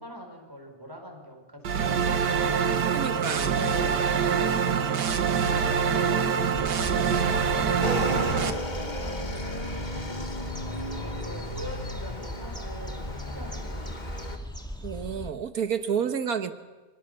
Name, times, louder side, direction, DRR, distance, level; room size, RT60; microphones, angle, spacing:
voice 1, 0.0-2.7 3.5-13.9 15.8-16.0, equal, 15° right, 2 dB, 5.3 m, -43 dB
sound 1, 1.6-8.5, right 6 dB, 85° right, 1.9 m, -25 dB
voice 2, 2.9-3.7 14.8-16.5, right 7 dB, 60° right, 9 dB, 1.8 m, -30 dB
sound 2, 6.5-15.3, equal, 5° left, 1.9 m, -38 dB
Motorcycle / Engine, 7.8-14.4, left 1 dB, 25° left, 2.0 m, -35 dB
28.0 x 26.0 x 6.9 m, 1.2 s
omnidirectional pair, 1.8 m